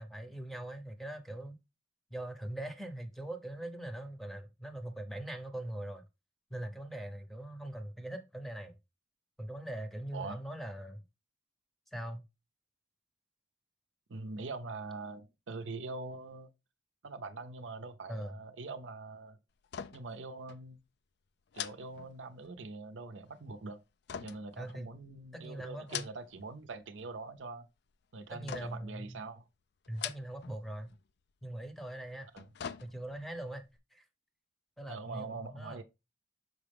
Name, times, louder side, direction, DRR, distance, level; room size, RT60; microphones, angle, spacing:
voice 1, 0.0-1.6 2.1-6.0 6.5-8.8 9.4-11.0 11.9-12.2 18.1-18.4 24.6-24.9 25.3-26.1 28.3-29.2 29.9-30.9 31.4-32.3 32.8-33.6 33.9-34.0 34.8-35.8, right 1 dB, ahead, 0.8 m, -42 dB
voice 2, 14.1-16.5 17.0-19.4 19.9-20.8 21.5-23.8 24.2-27.7 28.1-29.4 32.3-32.4 34.9-35.8, right 3 dB, 75° right, 0.6 m, -43 dB
sound 1, 19.6-20.2 20.5-20.6 21.5-22.6 24.1-25.2 25.7-26.5 26.8-27.4 28.5-29.0 29.8-30.6 30.9-31.0 32.1-33.3 33.7-33.8, left 8 dB, 60° left, 0.4 m, -43 dB
6.5 x 4.8 x 3.4 m
head